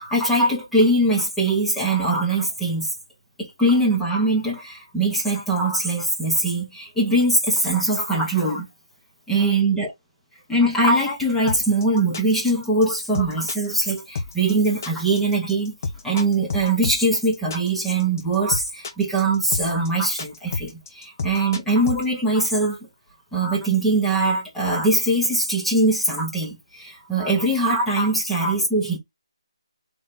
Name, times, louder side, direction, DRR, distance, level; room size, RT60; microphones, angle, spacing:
voice 1, 0.0-2.9 3.4-8.7 9.3-9.9 10.5-15.7 16.0-20.7 20.9-22.8 23.3-29.0, right 2 dB, 5° left, 1.0 m, -21 dB
sound 1, 11.5-22.0, left 3 dB, 35° left, 0.8 m, -30 dB
3.4 x 3.1 x 4.0 m
hypercardioid pair, 170°, 3 cm